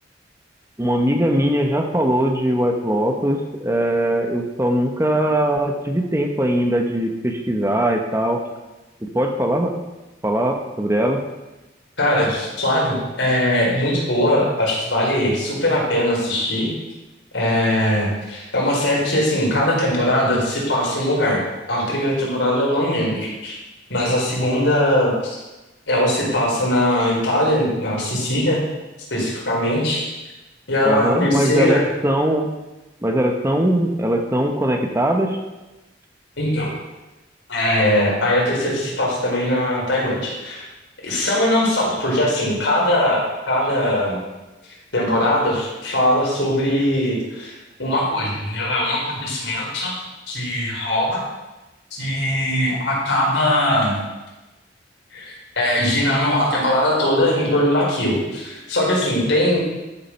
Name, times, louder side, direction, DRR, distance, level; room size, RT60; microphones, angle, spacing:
voice 1, 0.8-8.4 9.0-9.7 10.2-11.2 30.8-32.5 33.0-35.4, right 1 dB, 15° right, 3 dB, 1.1 m, -20 dB
voice 2, 12.0-16.7 17.3-21.4 21.7-23.6 23.9-25.4 25.9-28.6 29.1-30.1 30.7-31.8 36.4-36.7 37.5-40.6 41.0-44.2 44.9-47.5 47.8-49.9 50.3-51.2 51.9-53.9 55.1-59.6, left 1 dB, 85° left, -3 dB, 4.6 m, -20 dB
12.5 x 7.5 x 5.8 m, 1.1 s
head